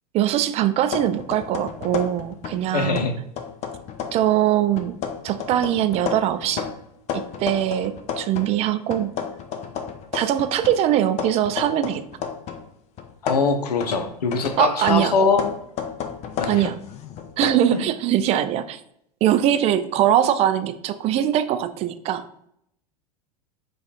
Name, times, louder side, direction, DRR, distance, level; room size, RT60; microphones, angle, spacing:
voice 1, 0.1-3.1 4.1-5.0 5.2-6.7 7.1-9.1 10.1-12.0 14.6-15.2 16.5-16.8 17.4-18.8 19.2-22.5, right 11 dB, 30° right, 11 dB, 0.4 m, -22 dB
sound 1, 0.9-2.7 3.0-4.3 4.8-8.6 8.9-12.7 13.0-17.6, left 7 dB, 35° left, 0.5 m, -32 dB
voice 2, 2.7-3.1 13.2-15.4 16.4-16.7, left 4 dB, 70° left, 7 dB, 0.7 m, -22 dB
4.8 x 2.5 x 4.1 m, 0.73 s
figure-of-eight pair, 85°, 21 cm